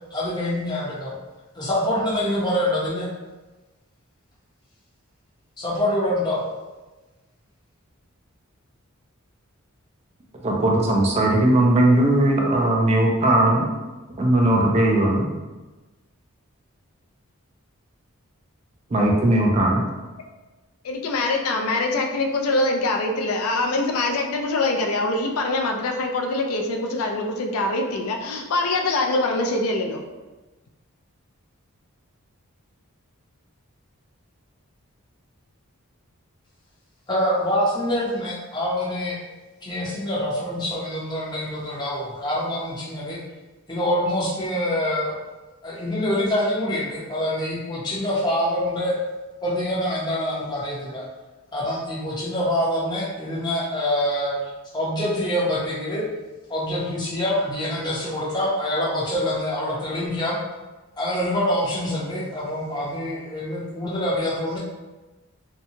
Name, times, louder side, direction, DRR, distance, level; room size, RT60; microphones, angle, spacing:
voice 1, 0.1-1.1 1.5-3.1 5.6-6.4 37.1-39.2 39.6-43.2 43.7-45.1 45.6-49.0 49.4-51.1 51.5-54.4 54.7-56.1 56.5-60.4 61.0-64.6, left 1 dB, 20° left, -6 dB, 0.6 m, -25 dB
voice 2, 10.4-13.7 14.2-15.3 18.9-19.8, right 1 dB, 30° right, -1 dB, 0.4 m, -18 dB
voice 3, 20.8-30.0, left 2 dB, 85° left, 2 dB, 0.4 m, -24 dB
2.8 x 2.2 x 2.7 m, 1.2 s
head